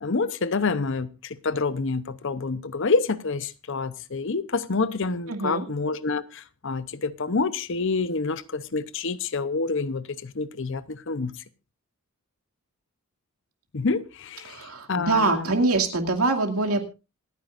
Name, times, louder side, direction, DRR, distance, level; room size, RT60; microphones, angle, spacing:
voice 1, 0.0-11.3 13.7-15.5, left 4 dB, 60° left, 0.8 m, -27 dB
voice 2, 5.3-5.7 14.5-16.9, right 3 dB, 90° right, 2.4 m, -24 dB
27.0 x 9.4 x 2.5 m
head